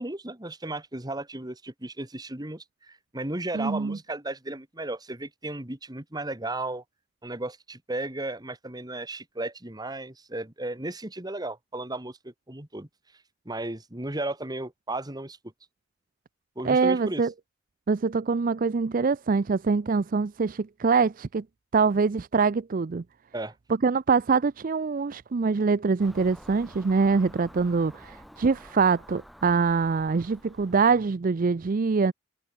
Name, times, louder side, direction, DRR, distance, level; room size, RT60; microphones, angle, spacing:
voice 1, 0.0-6.8 7.2-12.9 13.5-15.4 16.6-17.2 23.3-23.5, right 2 dB, 20° right, 2.2 m, -35 dB
voice 2, 3.5-4.0 16.6-17.3 17.9-21.4 21.7-23.0 23.8-32.1, right 4 dB, 50° right, 0.5 m, -24 dB
Car passing by / Engine, 26.0-31.0, equal, ahead, 4.1 m, -50 dB
head